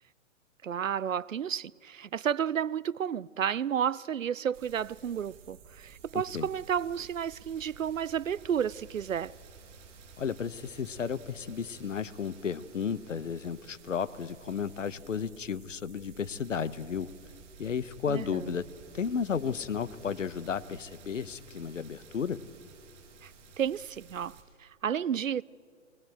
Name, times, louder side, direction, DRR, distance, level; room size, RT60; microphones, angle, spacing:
voice 1, 0.6-9.3 18.1-18.5 23.2-23.3 23.6-24.4 24.6-25.4, right 8 dB, 80° right, 0.5 m, -31 dB
sound 1, 4.5-24.4, right 5 dB, 35° right, 5.2 m, -53 dB
voice 2, 6.1-6.5 10.2-17.1 17.6-18.7 18.9-22.4, left 7 dB, 70° left, 1.0 m, -33 dB
21.0 x 21.0 x 8.0 m
figure-of-eight pair, 115°, 39 cm